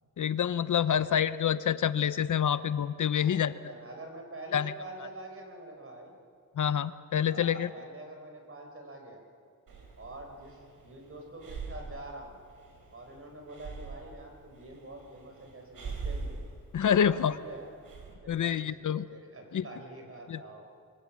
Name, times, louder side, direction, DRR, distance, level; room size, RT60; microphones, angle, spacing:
voice 1, 0.2-3.5 4.5-4.7 6.6-7.7 16.7-17.4 18.3-19.0 19.5-19.6 20.3-20.4, left 8 dB, 65° left, 14 dB, 0.7 m, -27 dB
voice 2, 3.1-6.1 7.3-9.2 10.0-12.4 12.9-16.4 16.8-17.7 18.2-20.6, right 2 dB, 40° right, 3 dB, 4.9 m, -46 dB
Breathing, 9.7-18.1, right 4 dB, 85° right, 4.4 m, -43 dB
26.5 x 23.0 x 7.4 m, 2.3 s
wide cardioid pair, 130°, 33 cm